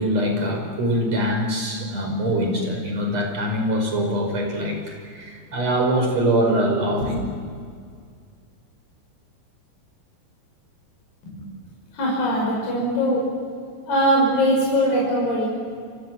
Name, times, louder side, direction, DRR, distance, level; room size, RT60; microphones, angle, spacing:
voice 1, 0.0-7.3, right 1 dB, 35° right, 3 dB, 6.4 m, -23 dB
voice 2, 11.9-13.3 13.9-15.5, equal, 50° left, -4 dB, 7.5 m, -21 dB
29.5 x 24.5 x 7.8 m, 2.1 s
omnidirectional pair, 5.2 m